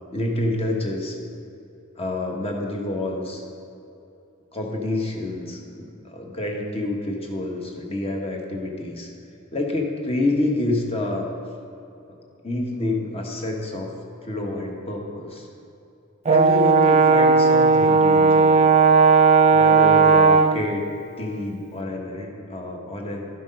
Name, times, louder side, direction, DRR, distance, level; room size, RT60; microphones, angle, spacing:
voice 1, 0.1-1.2 2.0-3.4 4.5-9.1 9.5-11.3 12.1-12.2 12.4-13.9 14.2-15.5 16.2-18.7 19.5-20.9 21.2-23.3, left 2 dB, 30° left, 1 dB, 1.2 m, -28 dB
Brass instrument, 16.3-20.7, right 4 dB, 35° right, 0.4 m, -15 dB
12.5 x 6.2 x 5.4 m, 2.8 s
head